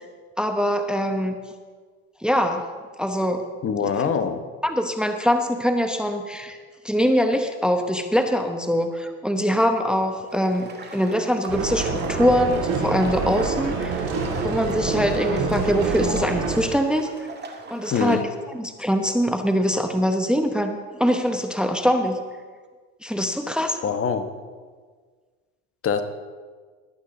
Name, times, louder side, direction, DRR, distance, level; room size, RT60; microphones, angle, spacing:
voice 1, 0.4-1.4 2.2-2.6 3.0-3.4 4.6-6.6 6.8-14.0 14.4-17.3 17.7-18.2 18.5-22.2 23.0-23.8, equal, ahead, 6 dB, 0.9 m, -23 dB
voice 2, 3.6-4.4 17.9-18.3 23.8-24.3 25.8-26.0, left 6 dB, 40° left, 9 dB, 1.1 m, -24 dB
sound 1, 10.0-18.2, right 3 dB, 30° right, 2.0 m, -40 dB
sound 2, 11.5-16.6, right 4 dB, 70° right, 3.3 m, -26 dB
20.5 x 8.7 x 3.9 m, 1.5 s
supercardioid pair, 85°, 36 cm